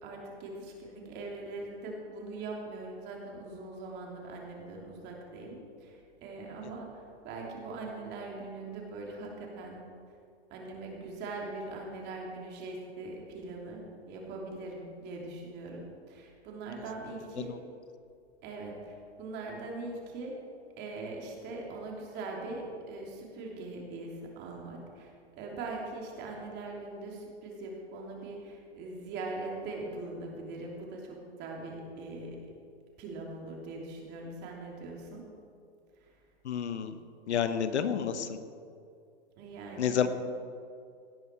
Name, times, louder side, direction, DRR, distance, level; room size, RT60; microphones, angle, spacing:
voice 1, 0.0-9.8 10.5-17.5 18.4-20.4 20.8-25.1 25.4-32.4 33.0-35.2 36.0-36.1 39.4-40.0, right 2 dB, 30° right, -1 dB, 3.0 m, -41 dB
voice 2, 36.4-37.0 37.3-38.4 39.8-40.1, left 8 dB, 85° left, 10 dB, 1.1 m, -29 dB
17.5 x 10.5 x 4.5 m, 2.4 s
hypercardioid pair, 140°, 33 cm